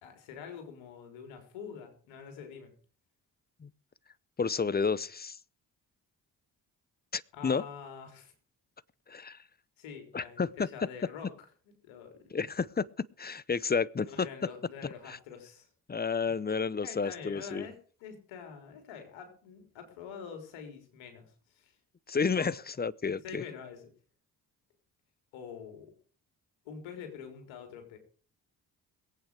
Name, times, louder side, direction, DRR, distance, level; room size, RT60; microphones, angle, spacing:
voice 1, 0.0-2.7 7.3-8.3 9.8-11.4 11.8-12.3 14.0-15.7 16.8-21.7 22.4-22.5 23.2-23.8 25.3-25.9 26.7-28.0, left 7 dB, 75° left, 3.9 m, -45 dB
voice 2, 4.4-5.4 7.1-7.6 9.1-9.4 10.1-10.7 12.3-12.9 13.2-14.3 15.1-15.2 15.9-17.7 22.1-23.4, left 5 dB, 20° left, 0.7 m, -31 dB
22.0 x 8.8 x 4.8 m
hypercardioid pair, 45°, 47 cm